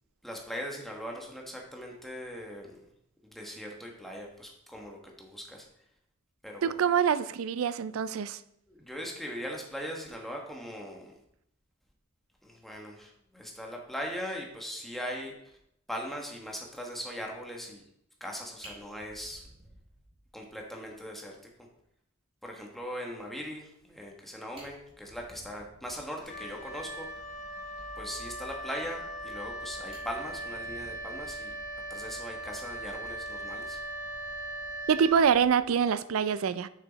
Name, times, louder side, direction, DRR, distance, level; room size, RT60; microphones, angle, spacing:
voice 1, 0.2-2.8 3.2-5.6 6.4-6.8 8.7-11.1 12.4-15.3 15.9-17.8 18.2-19.4 20.3-21.4 22.4-27.1 28.0-31.5 31.9-33.8, equal, ahead, 0 dB, 1.3 m, -40 dB
voice 2, 6.6-8.4 34.9-36.7, right 7 dB, 90° right, 15 dB, 0.4 m, -25 dB
Fire, 18.2-18.3 18.6-20.5 20.9-21.0 21.4-21.5 21.8-21.9 24.1-24.2 24.4-26.2 29.0-29.5 29.9-32.1 33.4-33.6, right 1 dB, 30° right, 2.9 m, -55 dB
Wind instrument woodwind instrument, 26.2-35.7, right 1 dB, 40° left, 0.8 m, -39 dB
6.4 x 6.2 x 4.0 m, 0.74 s
head